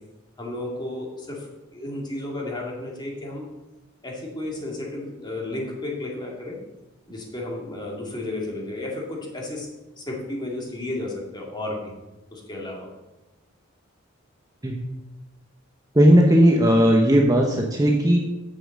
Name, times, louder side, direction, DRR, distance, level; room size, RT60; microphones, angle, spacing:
voice 1, 0.4-3.5 4.0-6.6 7.1-9.7 10.0-11.9 12.3-12.9, left 2 dB, 20° left, -2 dB, 2.4 m, -33 dB
voice 2, 15.9-18.2, equal, 20° right, 0 dB, 0.9 m, -16 dB
7.4 x 6.9 x 7.2 m, 1.0 s
head